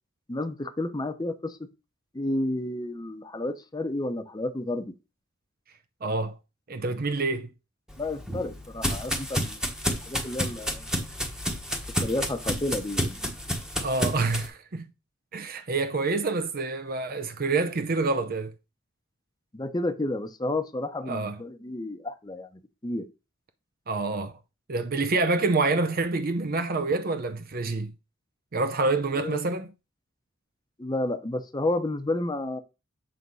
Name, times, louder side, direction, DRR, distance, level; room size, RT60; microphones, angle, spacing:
voice 1, 0.3-1.6 2.1-4.9 8.0-9.6 10.1-10.9 12.0-13.3 19.5-23.1 29.2-29.4 30.8-32.6, left 2 dB, 20° left, 0.7 m, -31 dB
voice 2, 6.0-6.4 6.7-7.5 13.8-14.9 15.3-18.5 21.0-21.4 23.9-24.3 24.7-27.9 28.5-29.7, right 3 dB, 45° right, 0.6 m, -27 dB
sound 1, 7.9-14.5, equal, 5° right, 1.1 m, -30 dB
7.8 x 3.6 x 5.4 m
head